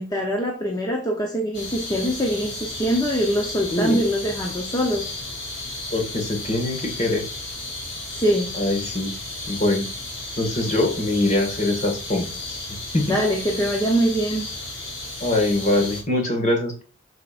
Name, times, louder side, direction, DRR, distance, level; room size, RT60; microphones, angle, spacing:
voice 1, 0.0-5.1 8.1-8.6 13.1-14.4, equal, 20° left, 1 dB, 0.9 m, -23 dB
sound 1, 1.5-16.0, left 2 dB, 60° left, 3.1 m, -33 dB
voice 2, 3.7-4.0 5.9-7.2 8.6-9.1 9.5-9.9 10.4-12.3 12.9-13.1 15.2-16.8, left 2 dB, 35° left, 2 dB, 2.0 m, -23 dB
8.2 x 6.5 x 2.6 m, 0.36 s
head